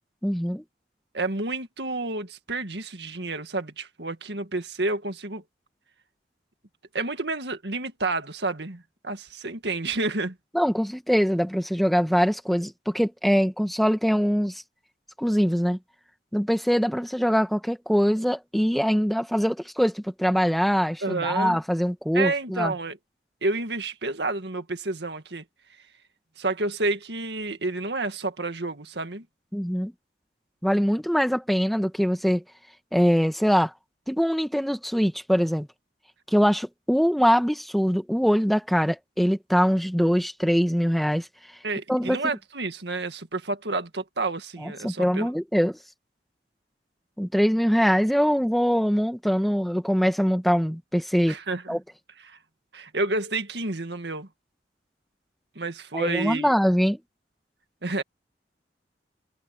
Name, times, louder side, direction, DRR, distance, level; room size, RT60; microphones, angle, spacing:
voice 1, 0.2-0.6 10.5-14.6 15.2-15.8 16.3-22.7 29.5-29.9 30.6-32.4 32.9-33.7 34.1-35.7 36.3-41.3 41.9-42.2 44.6-45.8 47.2-51.4 51.7-51.8 55.9-57.0, equal, ahead, 1.4 m, -23 dB
voice 2, 1.1-5.4 6.9-10.4 21.0-21.6 22.1-23.0 23.4-25.4 26.4-29.3 41.6-45.3 51.3-51.8 52.3-52.4 52.7-54.3 55.6-56.5 57.8-58.0, right 3 dB, 70° right, 1.9 m, -30 dB
head